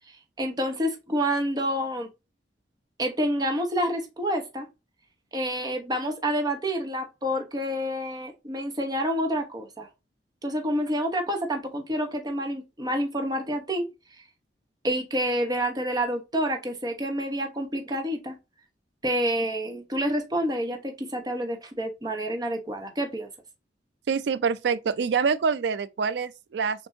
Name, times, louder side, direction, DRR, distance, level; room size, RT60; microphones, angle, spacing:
voice 1, 0.1-2.1 3.0-4.7 5.3-9.9 10.4-13.9 14.8-18.4 19.0-23.3, equal, 20° right, 0.8 m, -28 dB
voice 2, 24.1-26.9, right 5 dB, 70° right, 0.4 m, -26 dB
6.3 x 2.6 x 2.6 m
head